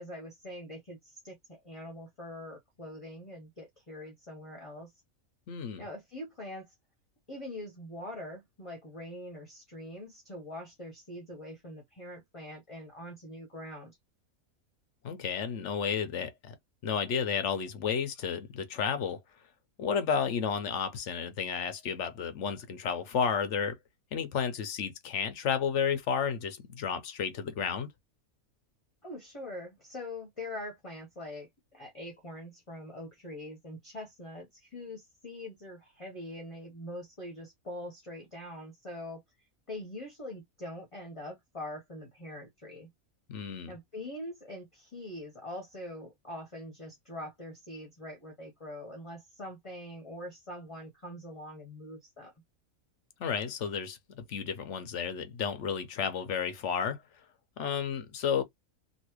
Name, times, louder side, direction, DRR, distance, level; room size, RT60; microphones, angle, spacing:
voice 1, 0.0-4.9 5.8-6.7 7.3-14.0 29.0-39.2 39.7-42.9 43.7-52.3, left 1 dB, 25° left, 1.0 m, -43 dB
voice 2, 5.5-5.9 15.0-16.5 16.8-19.2 19.8-23.8 24.1-27.9 43.3-43.8 53.2-57.0 57.6-58.4, left 7 dB, 60° left, 0.9 m, -32 dB
3.2 x 2.9 x 2.9 m
omnidirectional pair, 1.5 m